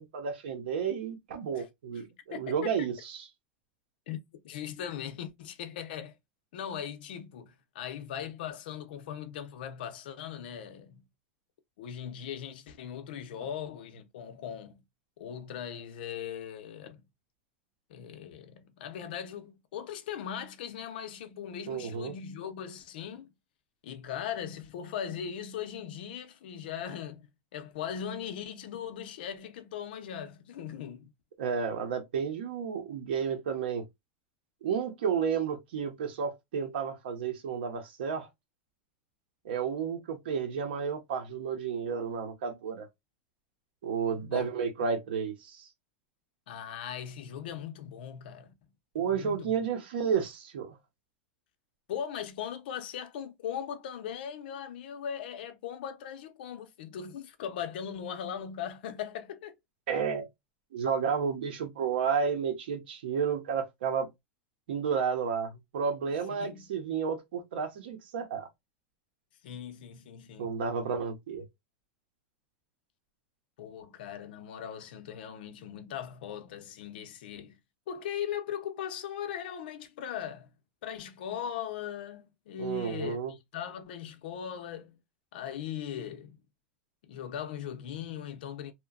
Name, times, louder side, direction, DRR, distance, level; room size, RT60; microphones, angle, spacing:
voice 1, 0.0-3.3 21.7-22.2 31.4-33.8 34.6-38.3 39.4-42.9 43.8-45.7 48.9-50.8 59.9-60.3 60.7-64.1 64.7-68.5 70.4-71.4 82.6-83.3, right 6 dB, 85° right, 0.8 m, -32 dB
voice 2, 2.3-2.7 4.1-4.2 4.4-6.2 6.5-11.1 11.8-14.8 15.2-17.0 17.9-23.3 23.8-27.3 27.5-31.1 44.1-44.5 46.5-48.5 49.0-49.6 51.9-59.6 66.1-66.7 69.4-70.6 73.6-77.6 77.9-80.5 80.8-85.0 85.3-86.4 87.0-88.7, left 9 dB, 70° left, 0.6 m, -39 dB
2.9 x 2.2 x 2.3 m
supercardioid pair, 170°, 5 cm